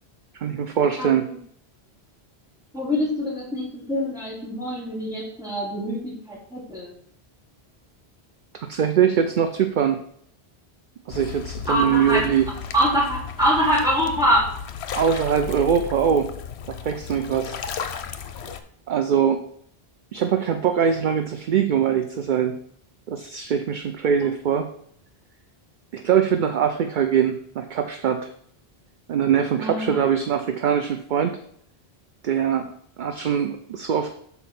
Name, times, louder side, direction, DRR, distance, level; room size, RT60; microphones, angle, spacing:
voice 1, 0.3-1.3 8.7-10.0 11.1-12.5 14.9-16.3 16.7-17.6 18.9-19.4 20.1-22.6 23.1-24.7 25.9-28.3 29.1-31.4 32.2-32.7 33.0-34.1, right 8 dB, 55° right, 7 dB, 0.6 m, -22 dB
voice 2, 2.7-6.9 11.7-12.2 12.7-14.4 15.1-15.2 29.6-30.1, equal, 5° right, -5 dB, 2.5 m, -24 dB
sound 1, 11.1-18.6, left 7 dB, 90° left, 0.9 m, -35 dB
7.2 x 4.1 x 5.8 m, 0.66 s
omnidirectional pair, 1.1 m